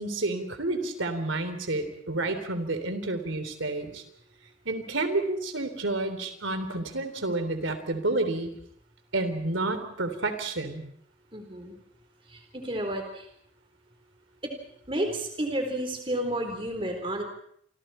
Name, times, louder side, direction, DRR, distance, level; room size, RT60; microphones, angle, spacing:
voice 1, 0.0-4.0 4.7-8.5 9.1-10.8, right 2 dB, 85° right, 9 dB, 3.4 m, -30 dB
voice 2, 11.3-11.7 12.3-13.3 14.4-14.5 14.9-17.2, right 1 dB, 25° right, 4 dB, 4.2 m, -31 dB
29.0 x 25.5 x 4.5 m, 0.66 s
head